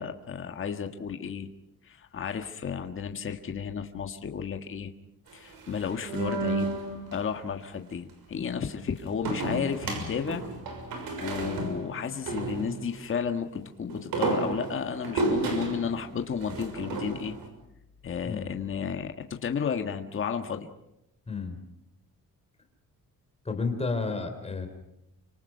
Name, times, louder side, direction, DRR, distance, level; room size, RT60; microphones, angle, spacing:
voice 1, 0.0-1.5 1.8-4.9 5.3-6.7 7.1-10.4 11.2-17.3 18.0-20.7, left 7 dB, 35° left, 5 dB, 1.6 m, -33 dB
sound 1, 5.3-7.2 9.2-13.1 13.9-17.5, right 3 dB, 85° right, 6.4 m, -32 dB
voice 2, 21.3-21.6 23.4-24.7, left 4 dB, 20° left, 6 dB, 3.2 m, -31 dB
29.0 x 26.0 x 5.6 m, 0.84 s
cardioid pair, 170°, 35 cm